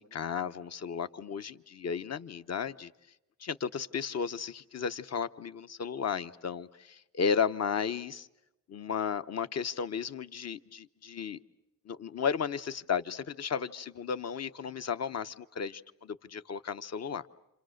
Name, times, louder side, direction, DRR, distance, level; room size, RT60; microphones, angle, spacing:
voice 1, 0.0-2.9 3.4-8.3 8.7-11.4 11.9-17.2, left 6 dB, 50° left, 0.9 m, -34 dB
29.0 x 27.0 x 6.5 m
cardioid pair, 75°, 34 cm